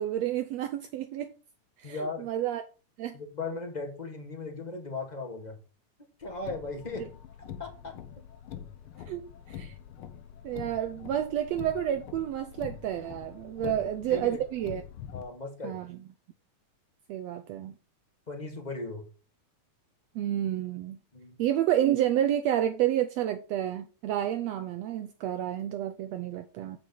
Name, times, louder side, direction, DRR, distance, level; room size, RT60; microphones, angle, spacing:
voice 1, 0.0-1.3 1.8-2.6 3.0-3.2 9.1-9.7 10.4-14.8 15.6-16.0 17.1-17.7 20.1-21.0 21.4-26.8, right 11 dB, 75° right, 1.7 m, -30 dB
voice 2, 1.8-2.3 3.1-5.6 6.2-7.1 7.6-7.9 13.6-13.7 14.1-14.4 15.1-15.8 18.3-19.0 21.1-21.4, left 3 dB, 15° left, 1.6 m, -37 dB
Car, 6.2-15.2, left 9 dB, 65° left, 1.4 m, -45 dB
8.2 x 6.0 x 4.1 m
omnidirectional pair, 3.4 m